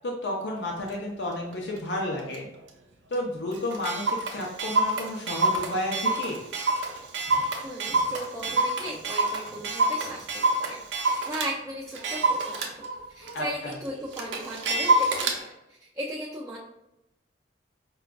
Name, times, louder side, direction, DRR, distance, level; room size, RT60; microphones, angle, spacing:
voice 1, 0.0-2.5 3.1-6.4 13.3-13.7, left 1 dB, 70° left, -1 dB, 0.6 m, -31 dB
Clock, 0.9-1.0 1.5-1.8 2.3-2.4 2.7-2.8 3.1-3.2 3.5-11.5 11.9-15.4, right 2 dB, 80° right, 0.6 m, -27 dB
voice 2, 7.6-12.9 13.1-16.6, right 1 dB, 15° right, -4 dB, 0.4 m, -37 dB
4.8 x 2.3 x 2.2 m, 0.91 s
head